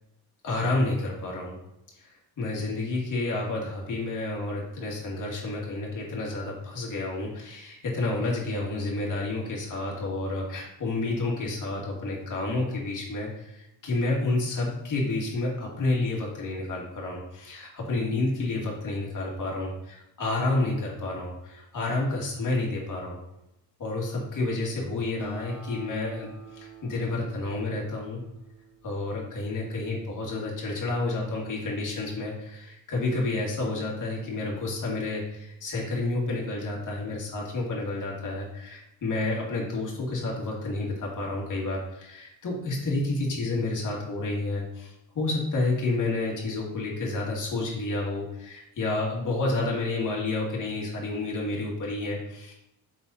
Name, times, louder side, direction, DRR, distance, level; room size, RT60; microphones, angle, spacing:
voice 1, 0.4-1.6 2.4-23.2 23.8-28.2 28.8-52.5, left 2 dB, 50° left, -3 dB, 2.4 m, -30 dB
Acoustic guitar, 25.2-30.0, right 1 dB, 5° right, 1.9 m, -48 dB
6.8 x 4.2 x 4.2 m, 0.87 s
cardioid pair, 85°, 38 cm